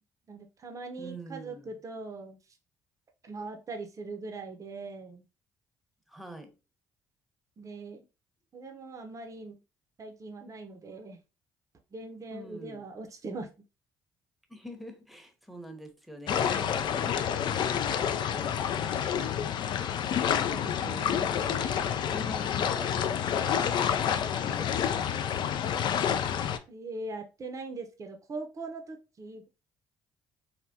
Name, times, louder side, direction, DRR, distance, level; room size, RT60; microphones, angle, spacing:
voice 1, 0.3-2.4 3.2-5.2 7.6-8.1 8.5-9.6 10.0-11.2 11.9-13.5 20.5-21.5 26.7-29.5, right 3 dB, 40° right, 0.6 m, -41 dB
voice 2, 1.0-1.8 6.1-6.5 12.3-12.9 14.5-19.9 20.8-25.5, equal, ahead, 0.8 m, -46 dB
sound 1, 16.3-26.6, left 8 dB, 60° left, 0.3 m, -28 dB
3.3 x 2.1 x 2.7 m
supercardioid pair, 60°, 9 cm